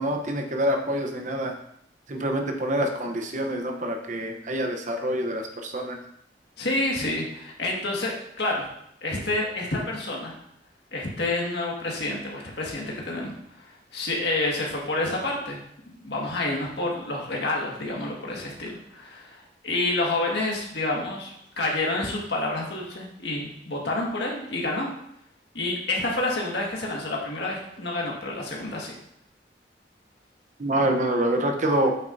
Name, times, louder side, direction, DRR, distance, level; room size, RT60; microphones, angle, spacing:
voice 1, 0.0-1.6 2.1-6.0 30.6-31.9, right 1 dB, 45° right, 4 dB, 0.9 m, -26 dB
voice 2, 6.6-8.7 9.0-10.3 10.9-15.6 16.0-24.9 25.5-28.9, left 2 dB, 65° left, -2 dB, 1.8 m, -29 dB
8.7 x 6.6 x 2.7 m, 0.74 s
head